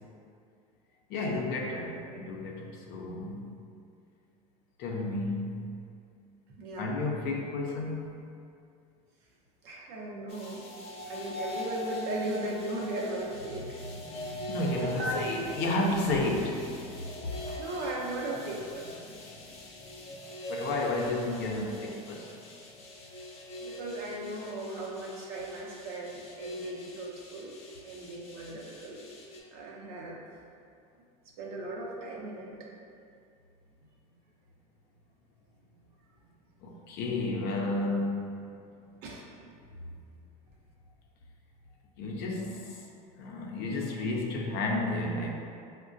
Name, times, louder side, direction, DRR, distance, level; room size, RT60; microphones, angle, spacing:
voice 1, 1.1-3.6 4.8-5.8 6.8-8.2 13.9-17.7 19.3-19.4 20.5-22.3 36.6-38.4 42.0-42.8 43.2-45.3, left 2 dB, 60° left, -1 dB, 0.5 m, -32 dB
voice 2, 6.6-6.9 9.6-10.6 11.1-13.8 14.8-15.2 17.6-19.1 23.6-27.5 27.8-29.1 29.5-30.2 31.4-32.7 39.0-39.2, right 1 dB, 60° right, -2 dB, 0.7 m, -37 dB
sound 1, 10.3-29.4, left 1 dB, 30° left, 0.8 m, -43 dB
4.7 x 2.1 x 2.6 m, 2.4 s
supercardioid pair, 110°, 19 cm